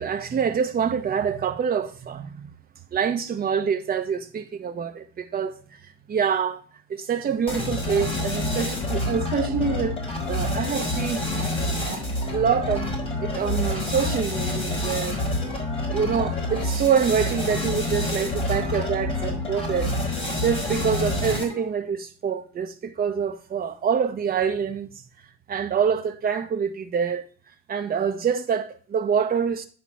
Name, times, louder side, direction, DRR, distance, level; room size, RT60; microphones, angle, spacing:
voice 1, 0.0-2.5 2.9-5.6 6.1-6.6 6.9-10.0 10.3-11.3 11.8-12.0 12.3-12.9 13.2-15.2 15.9-19.9 20.4-24.9 25.5-27.2 27.7-29.7, right 7 dB, 30° right, 1.2 m, -26 dB
sound 1, 7.5-21.7, left 1 dB, 20° left, 4.0 m, -27 dB
10.0 x 4.0 x 5.8 m
cardioid pair, 135°, 30 cm